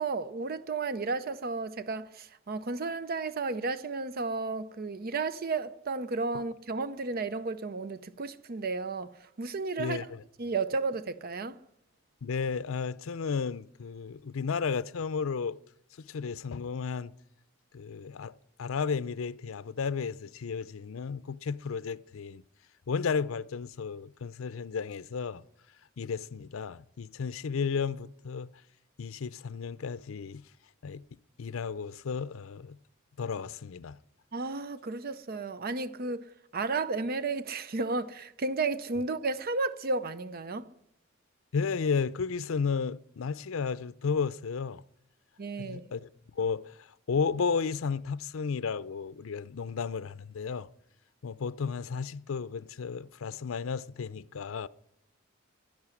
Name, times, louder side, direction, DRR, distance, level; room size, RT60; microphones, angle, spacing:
voice 1, 0.0-10.1 10.4-11.6 34.3-40.7 45.4-45.9, right 3 dB, 50° right, 0.6 m, -33 dB
voice 2, 9.8-10.2 12.2-15.6 16.0-17.1 17.7-18.3 18.6-22.4 22.9-25.4 26.0-28.5 29.0-30.4 30.8-31.0 31.4-32.8 33.2-34.0 41.5-44.8 45.6-46.1 46.4-50.7 51.2-54.7, left 5 dB, 90° left, 0.5 m, -33 dB
11.0 x 10.5 x 9.8 m
head